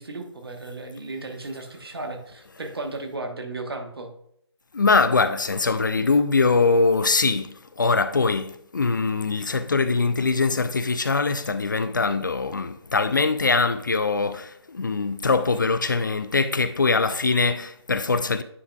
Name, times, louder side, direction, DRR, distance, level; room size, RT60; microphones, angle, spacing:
voice 1, 0.0-4.1, right 2 dB, 60° right, 1.2 m, -35 dB
voice 2, 4.7-18.4, left 4 dB, 45° left, 0.4 m, -22 dB
9.5 x 5.6 x 2.3 m
figure-of-eight pair, 155°, 15 cm